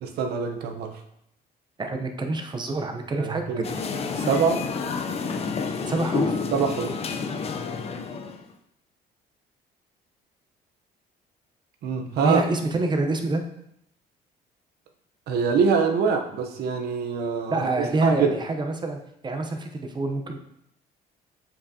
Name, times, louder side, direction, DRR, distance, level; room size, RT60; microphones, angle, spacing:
voice 1, 0.0-0.9 3.1-3.7 4.2-4.6 6.5-7.0 11.8-12.4 15.3-18.4, right 5 dB, 70° right, 5 dB, 0.9 m, -24 dB
voice 2, 1.8-3.6 5.9-6.4 12.2-13.4 17.5-20.4, right 2 dB, 25° right, 5 dB, 0.8 m, -27 dB
sound 1, 3.6-8.5, left 5 dB, 35° left, 0.6 m, -29 dB
7.0 x 5.5 x 2.8 m, 0.78 s
cardioid pair, 110°, 17 cm